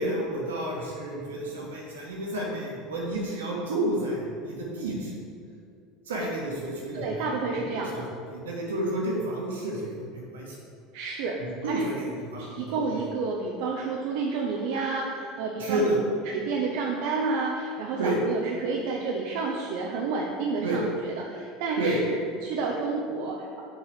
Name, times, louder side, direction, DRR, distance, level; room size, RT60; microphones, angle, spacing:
voice 1, 0.0-5.2 6.1-10.6 11.4-13.0 15.6-16.0 18.0-18.2 20.6-20.8 21.8-21.9, right 1 dB, 85° right, -3 dB, 1.5 m, -31 dB
voice 2, 6.9-8.1 10.9-11.4 11.7-12.0 12.4-15.9 16.3-23.6, right 4 dB, 65° right, -1 dB, 0.6 m, -30 dB
6.4 x 3.9 x 4.9 m, 2.4 s
hypercardioid pair, 80°, 0 cm